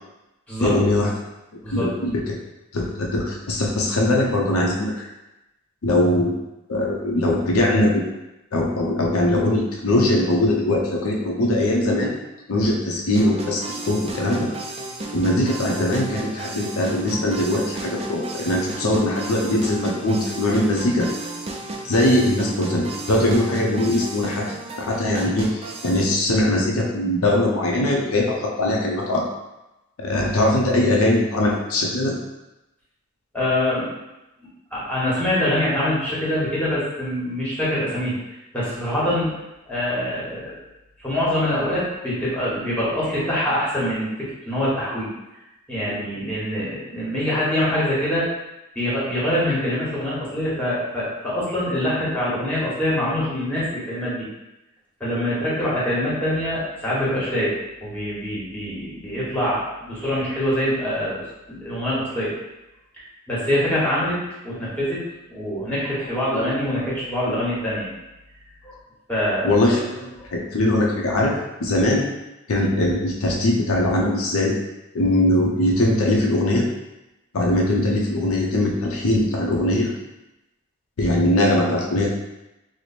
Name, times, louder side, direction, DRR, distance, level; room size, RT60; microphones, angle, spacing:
voice 1, 0.6-1.1 1.7-2.2 2.7-5.1 5.8-6.3 6.7-8.1 8.5-12.1 12.5-14.5 15.1-21.1 21.8-24.5 24.8-29.3 30.0-32.1 45.9-46.0 69.4-72.0 72.5-74.5 74.9-76.7 77.3-79.9 81.0-82.1, left 1 dB, 85° left, -1 dB, 0.6 m, -21 dB
sound 1, 13.1-26.1, right 2 dB, 30° right, 0.4 m, -33 dB
voice 2, 33.3-33.9 34.4-39.3 39.7-40.5 41.0-44.1 44.5-45.1 45.7-48.3 48.7-54.3 55.0-57.5 57.8-61.2 61.5-62.3 63.3-65.0 65.3-67.9 68.6-68.8 69.1-69.5, left 1 dB, 5° left, -8 dB, 1.1 m, -24 dB
3.1 x 2.1 x 4.1 m, 0.97 s
head